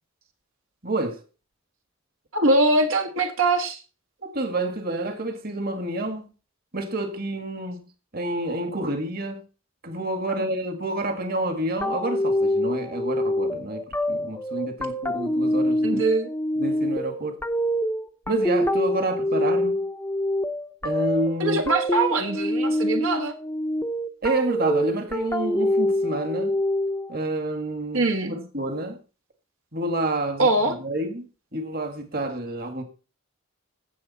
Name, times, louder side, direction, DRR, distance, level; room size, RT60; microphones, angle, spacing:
voice 1, 0.8-1.2 4.2-6.2 6.7-7.9 8.1-9.4 9.8-16.0 16.6-17.4 18.3-19.8 20.8-21.6 24.2-26.6 27.1-29.0 29.7-31.3 31.5-32.8, right 1 dB, 45° right, 1.9 m, -28 dB
voice 2, 2.3-3.8 15.8-16.3 21.4-23.3 27.9-28.3 30.4-30.7, right 2 dB, 70° right, 1.6 m, -22 dB
sound 1, 11.8-27.2, left 1 dB, 10° left, 0.8 m, -25 dB
16.0 x 6.5 x 4.2 m
head